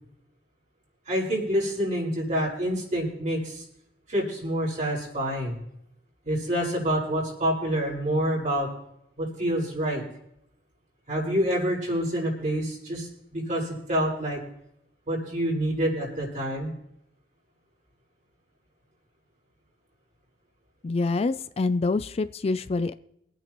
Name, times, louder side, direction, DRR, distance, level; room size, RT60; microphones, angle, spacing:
voice 1, 1.1-3.6 4.1-5.6 6.2-8.7 9.2-10.0 11.1-14.4 15.1-16.7, equal, 45° right, -4 dB, 5.1 m, -27 dB
voice 2, 20.8-22.9, left 3 dB, 35° left, 12 dB, 0.4 m, -26 dB
24.0 x 9.1 x 3.0 m, 0.78 s
head